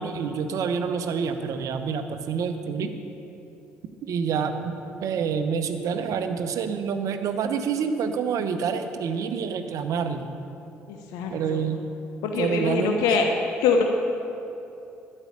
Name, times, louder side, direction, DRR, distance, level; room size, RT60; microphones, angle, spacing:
voice 1, 0.0-2.9 4.1-4.7 5.0-10.3 11.3-11.8 12.4-13.0, right 6 dB, 60° right, 8 dB, 0.8 m, -27 dB
voice 2, 10.9-11.6 12.2-13.2 13.6-13.8, left 5 dB, 70° left, 3 dB, 0.7 m, -24 dB
12.0 x 5.5 x 8.5 m, 2.9 s
hypercardioid pair, 50°, 6 cm